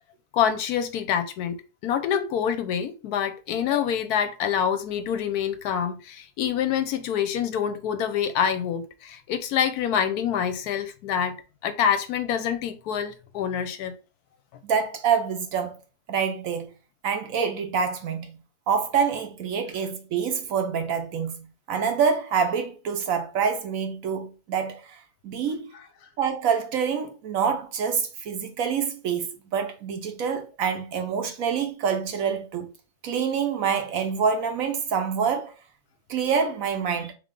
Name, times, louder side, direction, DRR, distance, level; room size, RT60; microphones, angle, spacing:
voice 1, 0.3-1.6 1.8-11.3 11.6-13.9 25.7-25.8, left 8 dB, 75° left, 1.1 m, -26 dB
voice 2, 14.6-15.8 16.1-16.7 17.0-18.4 18.7-25.0 25.2-25.7 26.2-32.7 33.0-35.5 36.1-37.1, right 6 dB, 65° right, 1.0 m, -26 dB
3.7 x 3.3 x 3.6 m
omnidirectional pair, 1.7 m